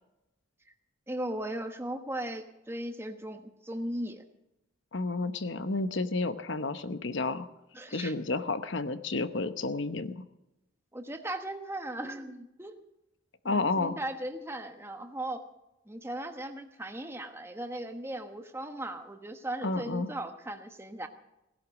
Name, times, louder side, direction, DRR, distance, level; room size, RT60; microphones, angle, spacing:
voice 1, 1.1-4.3 7.7-8.1 10.9-12.8 13.4-15.4 15.9-21.1, right 1 dB, 10° right, 6 dB, 1.1 m, -37 dB
voice 2, 4.9-7.5 7.9-10.2 13.4-13.9 19.6-20.1, left 3 dB, 60° left, 11 dB, 0.9 m, -31 dB
18.0 x 11.5 x 6.3 m, 0.92 s
head